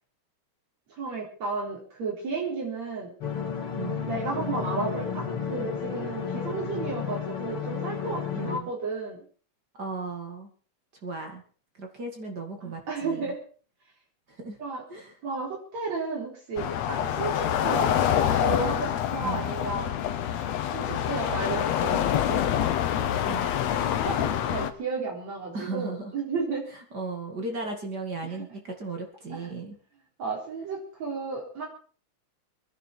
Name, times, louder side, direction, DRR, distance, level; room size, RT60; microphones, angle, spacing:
voice 1, 0.9-3.1 4.1-9.2 12.6-13.4 14.6-14.8 15.2-17.9 18.4-20.0 20.7-22.4 23.8-26.7 28.3-28.4 29.3-29.5 30.2-31.7, right 4 dB, 65° right, -2 dB, 5.3 m, -33 dB
sound 1, 3.2-8.6, left 7 dB, 50° left, 3.0 m, -32 dB
voice 2, 3.8-4.1 8.3-8.7 9.7-10.5 11.0-11.4 11.7-13.3 14.3-14.6 14.9-15.2 19.2-19.5 23.3-23.5 25.5-26.1 26.7-29.8, right 3 dB, 35° right, 3 dB, 2.5 m, -36 dB
sound 2, 16.6-24.7, left 10 dB, 70° left, 2.2 m, -26 dB
25.0 x 10.5 x 4.5 m, 0.40 s
omnidirectional pair, 3.3 m